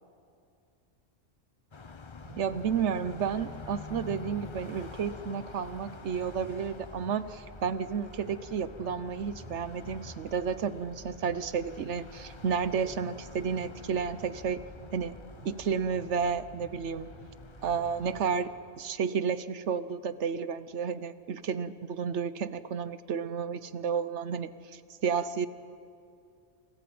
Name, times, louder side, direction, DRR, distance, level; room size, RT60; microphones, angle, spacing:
Car passing by, 1.7-18.9, left 4 dB, 30° left, 0.7 m, -48 dB
sound 1, 2.2-18.2, right 3 dB, 35° right, 1.0 m, -52 dB
voice 1, 2.4-14.6 14.9-15.2 15.4-17.1 17.6-25.5, right 6 dB, 70° right, 14 dB, 1.1 m, -32 dB
27.5 x 17.0 x 8.6 m, 2.5 s
omnidirectional pair, 1.3 m